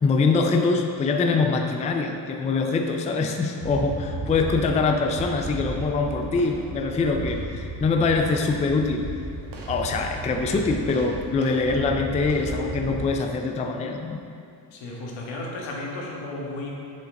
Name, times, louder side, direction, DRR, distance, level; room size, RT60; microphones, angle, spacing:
voice 1, 0.0-9.1 9.7-14.2, left 4 dB, 15° left, 3 dB, 0.3 m, -24 dB
sound 1, 3.6-13.1, right 2 dB, 50° right, 1.2 m, -34 dB
voice 2, 14.7-16.7, left 2 dB, 80° left, -3 dB, 1.7 m, -34 dB
7.8 x 6.6 x 3.8 m, 2.4 s
cardioid pair, 135°, 45 cm